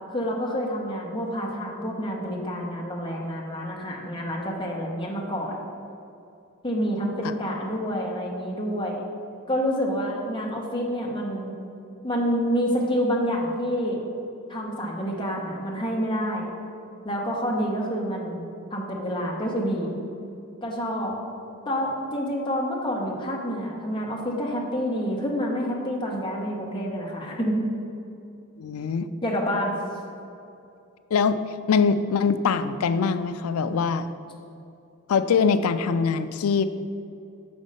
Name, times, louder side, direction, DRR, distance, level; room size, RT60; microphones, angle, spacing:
voice 1, 0.1-5.6 6.6-9.0 9.5-11.5 12.0-14.0 14.5-16.5 17.0-20.0 20.6-21.1 21.6-27.6 29.2-29.7, equal, 20° left, -1 dB, 1.0 m, -28 dB
voice 2, 28.6-29.1 31.1-31.4 31.7-34.1 35.1-36.6, left 5 dB, 85° left, 12 dB, 0.4 m, -23 dB
6.2 x 5.2 x 5.3 m, 2.6 s
head